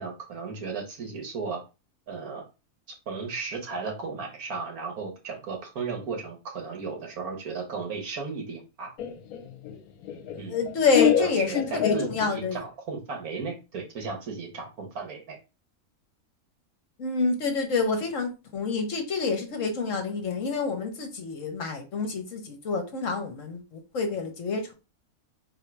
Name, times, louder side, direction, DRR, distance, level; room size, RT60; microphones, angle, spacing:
voice 1, 0.0-1.6 2.1-2.4 3.1-8.9 10.4-10.6 11.0-15.4, right 4 dB, 80° right, 1.7 m, -35 dB
Laughter, 9.0-12.6, left 9 dB, 80° left, 1.1 m, -27 dB
voice 2, 10.5-12.6 17.0-24.7, left 4 dB, 60° left, 1.2 m, -28 dB
3.8 x 2.8 x 4.5 m
omnidirectional pair, 1.5 m